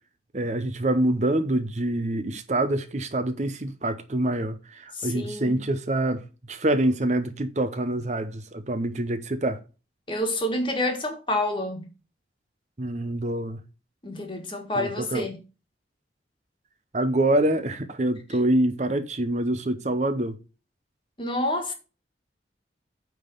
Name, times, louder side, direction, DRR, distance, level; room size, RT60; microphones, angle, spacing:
voice 1, 0.3-9.6 12.8-13.6 14.7-15.3 16.9-20.4, right 1 dB, 40° right, 0.7 m, -26 dB
voice 2, 4.9-5.6 10.1-11.8 14.0-15.4 21.2-21.7, left 1 dB, 25° left, 1.6 m, -28 dB
9.2 x 3.7 x 6.7 m
head